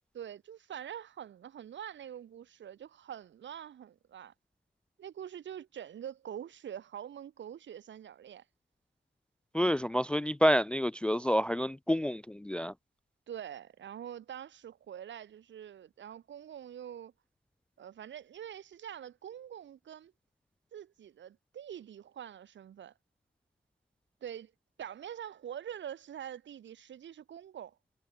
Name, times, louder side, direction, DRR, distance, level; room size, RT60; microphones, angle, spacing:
voice 1, 0.1-4.3 5.0-8.4 9.6-9.8 13.3-17.1 17.8-20.1 20.7-22.9 24.2-24.5 24.8-27.8, right 9 dB, 65° right, 7.2 m, -45 dB
voice 2, 9.5-12.7, equal, 5° left, 0.4 m, -28 dB
wide cardioid pair, 175°, 20 cm